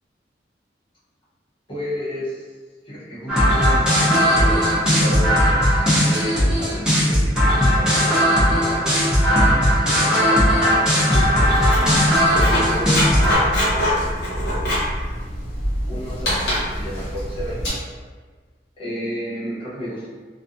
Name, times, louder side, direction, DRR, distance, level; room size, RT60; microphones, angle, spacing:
voice 1, 1.7-2.5 2.8-5.6 6.0-7.3 7.8-9.0 9.8-11.3 11.8-12.0 12.3-13.9 15.9-17.7 18.8-20.1, equal, 30° left, -10 dB, 0.7 m, -32 dB
sound 1, 3.3-13.4, equal, 5° right, 0.7 m, -17 dB
Writing, 11.2-17.7, left 1 dB, 65° left, 0.8 m, -24 dB
2.6 x 2.3 x 2.4 m, 1.4 s
head